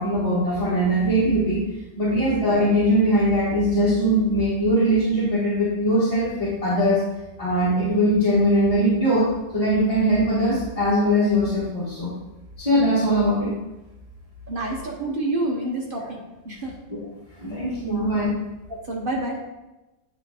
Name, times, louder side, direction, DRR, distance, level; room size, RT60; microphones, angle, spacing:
voice 1, 0.0-1.6 2.0-7.0 7.4-9.3 9.5-12.1 12.6-13.5 16.0-16.1 16.9-17.0 17.4-18.3, equal, 20° left, -10 dB, 1.9 m, -21 dB
voice 2, 14.5-16.7 17.8-18.1 18.7-19.4, right 2 dB, 35° right, -1 dB, 1.1 m, -29 dB
9.6 x 3.5 x 4.9 m, 1.0 s
omnidirectional pair, 1.8 m